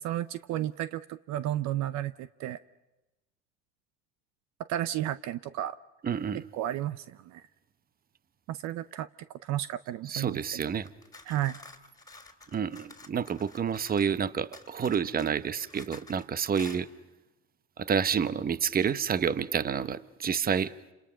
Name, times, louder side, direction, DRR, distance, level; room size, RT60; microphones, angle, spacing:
voice 1, 0.0-2.6 4.7-5.8 6.5-7.4 8.5-9.1 9.4-10.6 11.3-11.6, right 12 dB, 55° right, 15 dB, 0.7 m, -33 dB
voice 2, 6.0-6.4 10.1-10.9 12.5-16.9 17.8-20.7, right 7 dB, 25° right, 15 dB, 0.9 m, -29 dB
sound 1, 10.8-14.2 14.5-16.2 16.5-16.8, left 3 dB, 10° left, 2.9 m, -50 dB
28.5 x 27.0 x 5.7 m, 1.0 s
supercardioid pair, 85°, 33 cm